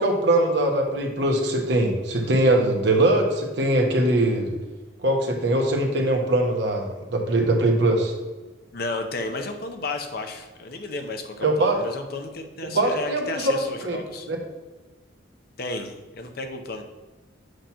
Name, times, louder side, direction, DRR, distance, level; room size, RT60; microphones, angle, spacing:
voice 1, 0.0-4.5 5.0-8.1 11.4-11.8 12.6-14.0 14.3-14.4, right 1 dB, 65° right, 2 dB, 1.1 m, -22 dB
voice 2, 8.7-14.3 15.6-16.8, left 2 dB, 50° left, 6 dB, 0.7 m, -33 dB
7.7 x 2.9 x 5.6 m, 1.2 s
head